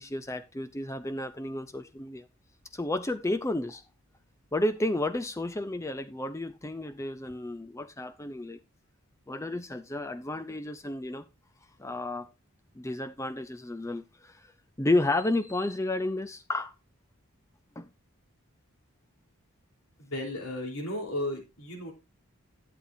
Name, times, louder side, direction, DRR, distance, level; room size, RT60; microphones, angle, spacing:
voice 1, 0.0-2.2 2.7-3.8 4.5-8.6 9.3-11.2 11.8-12.3 12.8-14.3 14.8-16.7 17.8-17.9, left 2 dB, 15° left, 0.5 m, -31 dB
voice 2, 20.0-21.9, left 1 dB, 80° left, 3.5 m, -34 dB
11.5 x 8.0 x 2.7 m
head